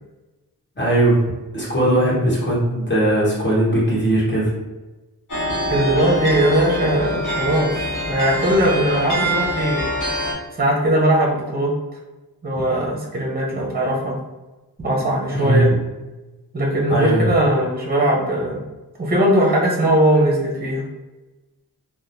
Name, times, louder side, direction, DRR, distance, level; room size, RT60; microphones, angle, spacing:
voice 1, 0.8-4.5 15.3-15.7 16.9-17.2, right 1 dB, 30° left, -7 dB, 1.3 m, -19 dB
sound 1, 5.3-10.3, equal, 50° left, 1.0 m, -25 dB
voice 2, 5.7-9.9 10.5-11.7 12.4-14.1 14.8-15.7 16.5-18.6 19.0-20.8, right 1 dB, 25° right, -2 dB, 0.8 m, -19 dB
2.9 x 2.1 x 2.6 m, 1.1 s
cardioid pair, 55°, 40 cm